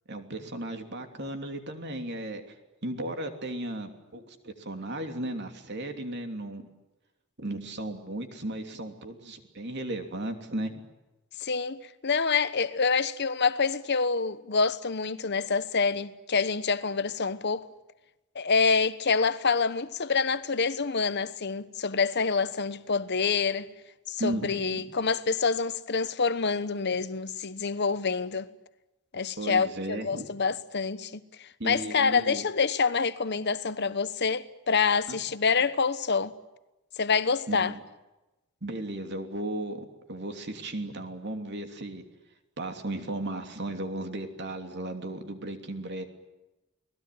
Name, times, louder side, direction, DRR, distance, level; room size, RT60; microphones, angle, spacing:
voice 1, 0.1-2.4 2.8-6.7 7.4-10.8 24.2-24.8 29.4-30.3 31.6-32.4 35.1-35.2 37.5-37.8 38.6-42.0 42.6-46.0, right 1 dB, 55° right, 3.1 m, -35 dB
voice 2, 11.4-17.7 18.3-23.7 24.1-28.5 29.1-31.2 31.6-36.3 37.0-37.7, left 5 dB, 50° left, 1.1 m, -27 dB
29.5 x 20.0 x 9.4 m
head